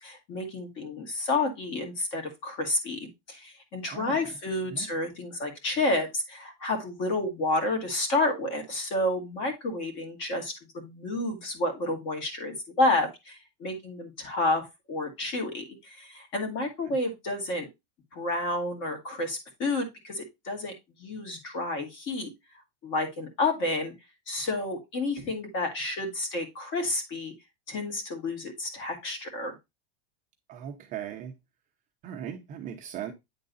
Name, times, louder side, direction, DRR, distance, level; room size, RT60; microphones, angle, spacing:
voice 1, 0.0-17.7 18.1-20.7 21.0-22.3 22.8-23.9 24.3-27.3 27.7-29.5, left 2 dB, 35° left, 2.1 m, -30 dB
voice 2, 3.9-4.4 4.7-4.9 30.5-31.3 32.0-33.1, right 9 dB, 25° right, 0.7 m, -38 dB
9.5 x 3.7 x 4.0 m
supercardioid pair, 175°, 33 cm